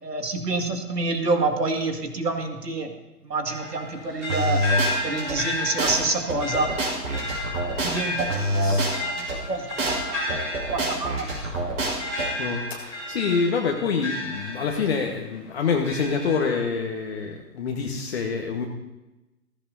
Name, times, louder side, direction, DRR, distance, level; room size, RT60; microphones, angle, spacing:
voice 1, 0.0-2.9 3.2-4.6 5.0-6.8 7.1-7.3 7.8-10.4 10.7-11.9, right 3 dB, 70° right, 4 dB, 2.3 m, -28 dB
sound 1, 3.5-15.2 15.6-16.6, left 2 dB, ahead, 0.5 m, -33 dB
sound 2, 4.3-5.4 5.8-6.0 6.3-9.4 9.8-10.0 10.3-12.3, right 1 dB, 55° right, 5.0 m, -26 dB
voice 2, 6.6-7.0 8.6-9.0 12.4-18.6, left 5 dB, 40° left, 1 dB, 1.4 m, -27 dB
20.0 x 15.5 x 2.7 m, 1.0 s
figure-of-eight pair, 135°, 49 cm